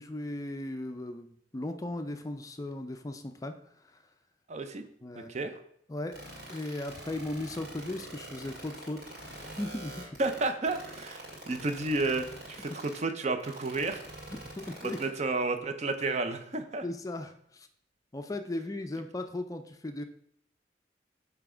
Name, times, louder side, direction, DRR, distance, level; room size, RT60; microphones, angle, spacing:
voice 1, 0.0-3.5 3.8-4.0 5.0-5.5 5.9-6.2 6.5-9.2 9.5-10.0 14.3-15.0 16.8-17.7 18.1-20.0, left 1 dB, 20° left, 7 dB, 0.4 m, -37 dB
voice 2, 4.5-4.8 5.3-5.5 10.2-14.0 14.8-16.8, right 3 dB, 40° right, 8 dB, 0.6 m, -31 dB
sound 1, 6.1-13.0 13.4-15.0, right 2 dB, 60° right, 2.5 m, -44 dB
7.1 x 3.4 x 4.8 m, 0.68 s
head